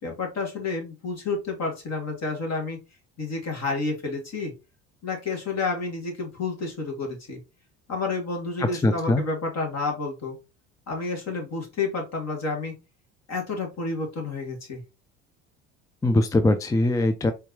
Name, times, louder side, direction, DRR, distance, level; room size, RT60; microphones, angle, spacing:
voice 1, 0.0-2.8 3.2-4.5 5.0-7.4 7.9-10.4 10.9-12.8 13.3-14.8, left 3 dB, 40° left, 2 dB, 2.4 m, -30 dB
voice 2, 8.6-9.2 16.0-17.3, left 2 dB, 10° left, 9 dB, 0.4 m, -22 dB
4.4 x 3.4 x 3.0 m, 0.27 s
hypercardioid pair, 70°, 39 cm